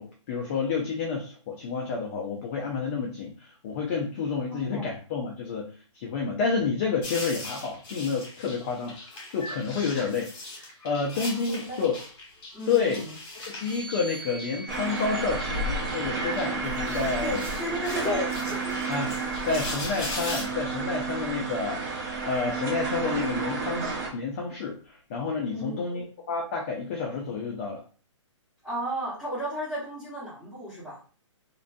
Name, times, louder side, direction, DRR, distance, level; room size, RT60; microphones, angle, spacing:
voice 1, 0.0-9.0 9.3-10.3 10.6-12.0 12.7-13.0 13.5-17.4 18.0-18.3 18.9-19.2 19.5-21.8 22.2-27.8, left 5 dB, 25° left, 0 dB, 0.4 m, -29 dB
voice 2, 4.5-4.9 11.5-11.9 12.5-13.1 17.2-18.4 25.4-25.9 28.6-31.0, right 1 dB, ahead, -11 dB, 1.2 m, -34 dB
sound 1, 7.0-20.4, left 2 dB, 50° left, 1.3 m, -40 dB
sound 2, 13.5-17.1 17.9-19.5, right 2 dB, 85° right, 0.8 m, -46 dB
sound 3, 14.7-24.1, right 3 dB, 30° right, 0.7 m, -31 dB
2.4 x 2.2 x 2.5 m, 0.38 s
hypercardioid pair, 155°, 16 cm